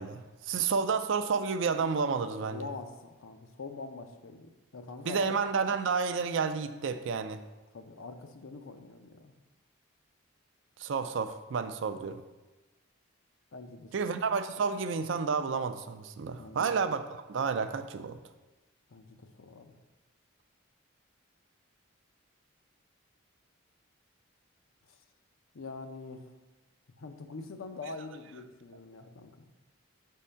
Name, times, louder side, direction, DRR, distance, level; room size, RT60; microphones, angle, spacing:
voice 1, 0.0-2.7 5.0-7.4 10.8-12.2 13.9-18.2, right 5 dB, 60° right, 10 dB, 0.4 m, -30 dB
voice 2, 2.4-5.3 7.7-9.3 13.5-14.1 16.3-16.8 18.9-19.7 25.5-26.3 27.0-29.5, left 3 dB, 75° left, 7 dB, 0.6 m, -44 dB
5.3 x 3.7 x 5.5 m, 1.1 s
head